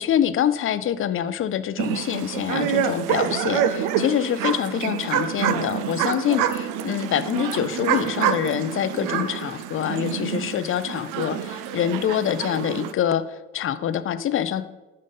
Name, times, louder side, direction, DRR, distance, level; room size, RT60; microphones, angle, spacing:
voice 1, 0.0-14.6, left 9 dB, 40° left, 13 dB, 0.5 m, -25 dB
sound 1, 1.8-12.9, right 9 dB, 75° right, 0.6 m, -27 dB
5.4 x 5.2 x 5.3 m, 1.1 s
supercardioid pair, 75°, 32 cm